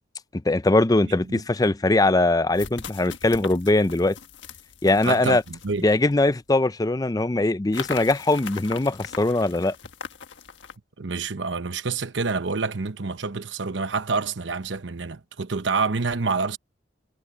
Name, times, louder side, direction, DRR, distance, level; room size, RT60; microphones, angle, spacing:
voice 1, 0.5-4.2 4.8-5.4 5.8-9.7, left 2 dB, 20° left, 0.5 m, -21 dB
voice 2, 1.0-1.4 5.0-5.9 11.0-16.6, right 4 dB, 80° right, 1.0 m, -27 dB
sound 1, 1.2-1.3 2.5-6.4 7.7-10.8, left 6 dB, 85° left, 1.4 m, -40 dB
head